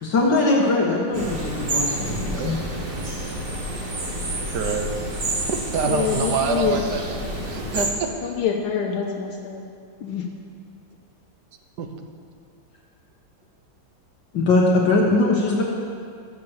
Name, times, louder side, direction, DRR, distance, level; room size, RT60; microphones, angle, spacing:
voice 1, 0.0-2.6 14.3-15.6, left 2 dB, 65° left, -3 dB, 2.0 m, -20 dB
sound 1, 1.1-7.9, right 1 dB, 30° right, 1.3 m, -29 dB
voice 2, 4.5-4.9 5.5-7.2 7.4-8.3 11.8-11.9, right 5 dB, 60° right, 5 dB, 1.4 m, -26 dB
voice 3, 5.8-6.8 8.2-9.6 10.0-10.3, left 8 dB, 85° left, 1 dB, 1.8 m, -26 dB
13.5 x 6.9 x 7.1 m, 2.3 s
omnidirectional pair, 2.2 m